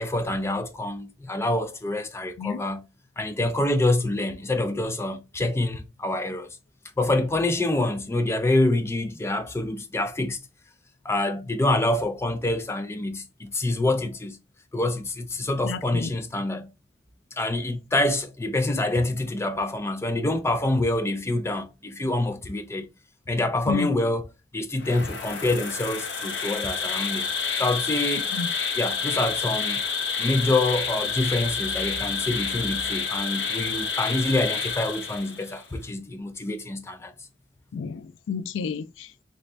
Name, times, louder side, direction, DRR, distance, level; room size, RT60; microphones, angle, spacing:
voice 1, 0.0-2.8 3.2-6.6 7.0-10.4 11.0-14.4 14.7-16.7 17.3-22.9 23.3-24.3 24.5-27.3 27.6-28.3 28.8-29.8 30.2-37.1, left 2 dB, 15° left, 0.4 m, -26 dB
voice 2, 15.6-16.1 23.7-23.9 28.3-28.5 37.7-39.2, left 6 dB, 90° left, 0.3 m, -31 dB
Insect, 24.8-35.6, left 5 dB, 70° left, 0.8 m, -29 dB
3.0 x 2.7 x 3.2 m
head